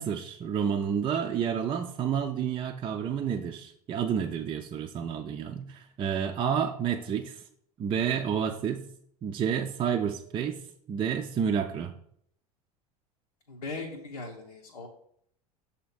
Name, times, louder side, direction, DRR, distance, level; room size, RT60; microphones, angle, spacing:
voice 1, 0.0-7.4 7.8-8.8 9.2-10.6 10.9-11.9, right 7 dB, 25° right, 3 dB, 0.5 m, -30 dB
voice 2, 13.5-14.9, left 3 dB, 80° left, -2 dB, 0.8 m, -39 dB
6.9 x 2.8 x 5.8 m, 0.66 s
figure-of-eight pair, 80°, 20 cm